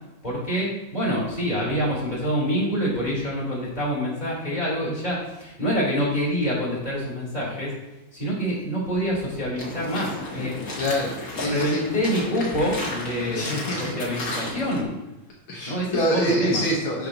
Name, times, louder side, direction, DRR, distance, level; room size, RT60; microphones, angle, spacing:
voice 1, 0.2-7.7 8.1-10.5 11.4-13.5 13.8-14.9 15.7-16.6, equal, 20° left, -5 dB, 4.3 m, -26 dB
sound 1, 9.6-14.8, left 2 dB, 40° left, 2.3 m, -33 dB
voice 2, 10.8-11.8 13.3-13.8 15.5-17.1, equal, 70° left, -3 dB, 2.2 m, -25 dB
11.5 x 9.5 x 3.0 m, 1.0 s
omnidirectional pair, 2.4 m